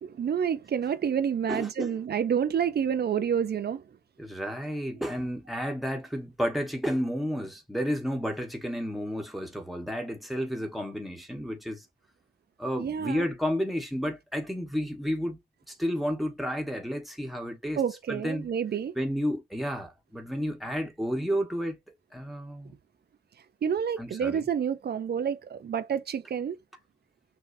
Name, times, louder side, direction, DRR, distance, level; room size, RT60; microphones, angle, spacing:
voice 1, 0.0-3.9 12.8-13.3 17.8-18.9 23.6-26.6, right 8 dB, 85° right, 0.5 m, -28 dB
voice 2, 1.5-1.9 4.2-11.8 12.6-15.4 15.7-17.8 18.1-18.5 18.9-21.8 22.1-22.7 24.0-24.4, equal, ahead, 1.3 m, -31 dB
6.0 x 2.7 x 2.7 m
wide cardioid pair, 125°, 16 cm